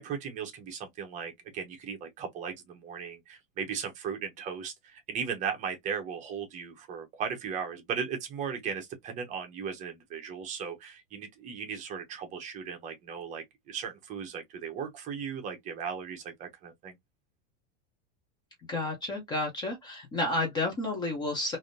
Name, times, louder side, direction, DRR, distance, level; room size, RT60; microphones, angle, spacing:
voice 1, 0.0-17.0, right 6 dB, 25° right, 0.8 m, -37 dB
voice 2, 18.7-21.6, left 2 dB, 15° left, 0.5 m, -31 dB
3.4 x 2.5 x 2.5 m
supercardioid pair, 170°, 30 cm